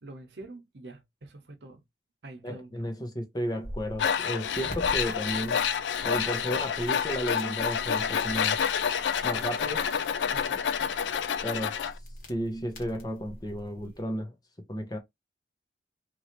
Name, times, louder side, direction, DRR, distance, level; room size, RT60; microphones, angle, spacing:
voice 1, 0.0-1.8 2.2-2.9 10.3-10.9, right 2 dB, 75° right, 0.8 m, -46 dB
voice 2, 2.4-5.7 6.0-8.6 9.2-9.9 11.4-11.8 12.3-14.3 14.7-15.0, equal, 20° left, 0.7 m, -33 dB
sound 1, 3.4-14.0, equal, 50° left, 1.3 m, -45 dB
Tools, 4.0-11.9, left 7 dB, 85° left, 0.4 m, -28 dB
3.0 x 2.6 x 2.9 m
head